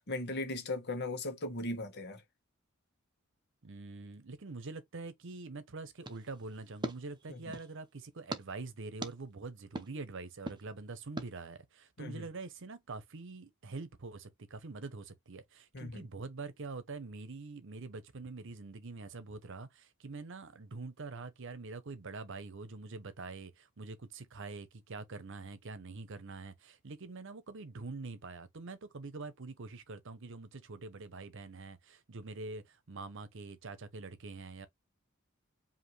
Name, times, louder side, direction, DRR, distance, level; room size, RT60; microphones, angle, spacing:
voice 1, 0.0-2.2 7.3-7.4 12.0-12.2 15.7-16.1, left 2 dB, 55° left, 1.2 m, -38 dB
voice 2, 3.6-34.7, right 3 dB, 65° right, 0.8 m, -45 dB
sound 1, 6.0-7.8 8.3-8.4 9.0-9.1 9.8-9.9 10.5-10.6 11.2-11.3, right 2 dB, 20° right, 0.8 m, -41 dB
5.1 x 2.8 x 3.2 m
head